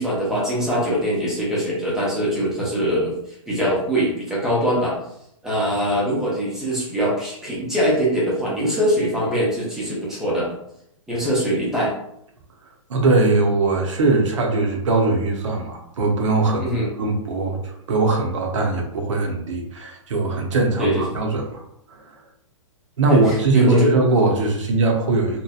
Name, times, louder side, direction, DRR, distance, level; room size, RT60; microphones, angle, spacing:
voice 1, 0.0-3.1 3.5-5.0 5.4-10.6 11.1-11.9 16.6-16.9 20.8-21.0 23.1-24.1, equal, 5° right, -7 dB, 0.4 m, -22 dB
voice 2, 12.9-21.6 21.9-22.1 23.0-25.4, right 3 dB, 65° right, 1 dB, 0.7 m, -21 dB
2.8 x 2.1 x 2.3 m, 0.75 s
hypercardioid pair, 165°, 17 cm